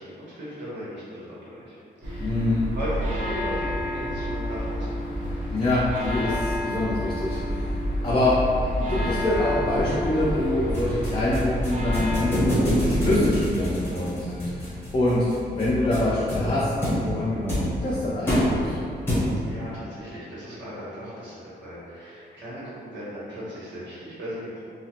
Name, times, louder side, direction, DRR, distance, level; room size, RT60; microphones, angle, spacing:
voice 1, 0.0-2.4 2.7-4.9 19.4-24.6, equal, 80° right, -10 dB, 1.2 m, -37 dB
sound 1, 2.0-12.2, equal, 45° right, 0.8 m, -29 dB
voice 2, 2.2-2.6 5.5-7.7 8.0-8.3 8.8-16.7 17.0-18.8, left 1 dB, 30° left, -9 dB, 0.5 m, -25 dB
sound 2, 10.7-19.6, equal, 10° left, 1.0 m, -27 dB
2.9 x 2.3 x 2.8 m, 2.5 s
cardioid pair, 115°, 18 cm